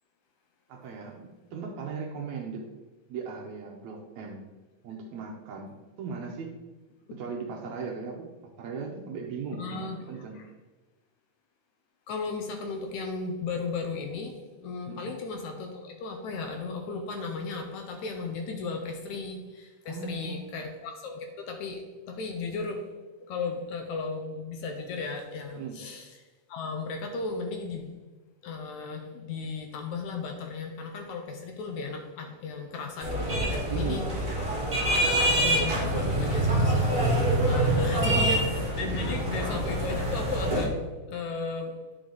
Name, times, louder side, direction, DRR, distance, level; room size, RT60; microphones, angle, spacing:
voice 1, 0.7-2.6 3.1-4.5 4.8-6.5 7.1-8.3 8.6-10.4 14.9-15.1 19.8-20.5 25.6-25.8 33.7-34.0 37.5-38.2 39.0-39.2, right 5 dB, 70° right, 1 dB, 1.9 m, -38 dB
voice 2, 9.5-10.4 12.1-22.9 23.3-26.2 26.5-27.9 28.4-34.1 34.7-35.1 35.4-41.8, left 4 dB, 75° left, 4 dB, 2.0 m, -35 dB
sound 1, 33.0-40.7, right 1 dB, 25° right, 1.5 m, -26 dB
10.0 x 5.2 x 3.9 m, 1.2 s
omnidirectional pair, 3.9 m